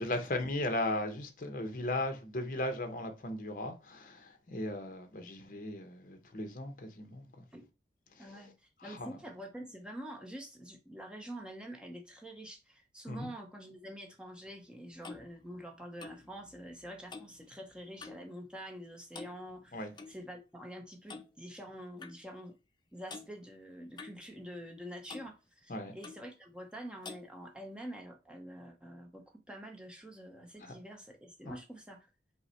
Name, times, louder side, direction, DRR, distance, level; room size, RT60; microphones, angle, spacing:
voice 1, 0.0-7.4 8.2-8.4 8.8-9.2 13.1-13.3 19.7-19.9 25.7-25.9 30.6-30.7 31.5-31.6, left 1 dB, 50° left, 0.8 m, -37 dB
voice 2, 8.2-8.5 8.8-22.5 22.9-32.1, equal, 5° right, 0.7 m, -46 dB
Clock, 14.5-18.3 18.6-18.9 19.1-20.2 21.1-21.3 22.0-22.2 23.1-23.3 24.0-24.8 25.1-25.3 26.0-26.3 27.0-27.3, left 4 dB, 25° left, 0.4 m, -49 dB
5.5 x 2.1 x 4.4 m
head